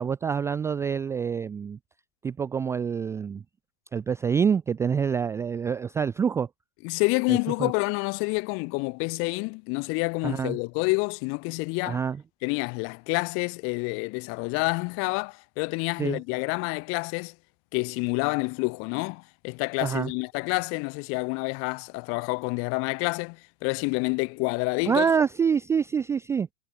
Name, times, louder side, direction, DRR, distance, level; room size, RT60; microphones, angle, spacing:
voice 1, 0.0-1.8 2.2-3.4 3.9-6.5 7.3-7.7 10.2-10.6 11.8-12.2 16.0-16.2 19.8-20.1 24.9-26.5, right 6 dB, 5° right, 0.5 m, -26 dB
voice 2, 6.8-12.0 12.4-17.3 17.7-25.0, left 32 dB, 35° left, 1.5 m, -28 dB
figure-of-eight pair, 105°, 38 cm